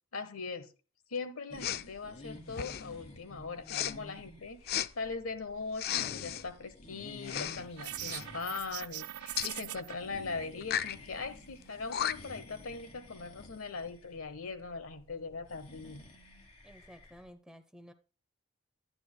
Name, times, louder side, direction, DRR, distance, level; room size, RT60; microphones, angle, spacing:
voice 1, 0.1-0.7 1.1-16.0, left 4 dB, 85° left, 1.2 m, -40 dB
sound 1, 1.5-17.3, left 1 dB, 30° left, 1.5 m, -52 dB
Respiratory sounds, 1.6-1.9 2.5-2.9 3.7-3.9 4.7-4.9 5.7-6.4 7.2-7.6 7.9-8.2 9.4-9.5 10.6-11.0 11.6-11.7 11.9-12.4, left 10 dB, 45° left, 0.4 m, -34 dB
sound 2, 7.8-10.0, right 15 dB, 90° right, 0.3 m, -41 dB
voice 2, 16.6-17.9, equal, 5° right, 0.6 m, -53 dB
11.5 x 10.5 x 2.2 m
head